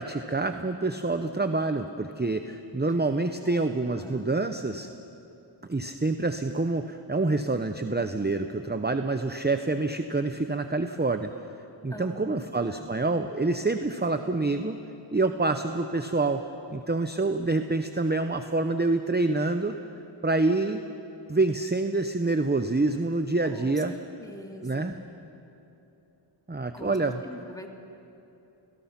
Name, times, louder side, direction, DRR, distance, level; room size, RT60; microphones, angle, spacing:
voice 1, 0.0-4.9 5.7-11.3 11.8-14.8 15.1-19.8 20.2-20.8 21.3-23.9 24.6-24.9 26.5-27.2, right 3 dB, 20° right, 8 dB, 0.8 m, -27 dB
voice 2, 3.4-4.3 11.9-12.9 23.4-25.0 26.7-27.0 27.2-27.7, equal, 5° left, 2 dB, 2.4 m, -44 dB
29.5 x 19.0 x 5.9 m, 2.9 s
wide cardioid pair, 45°, 48 cm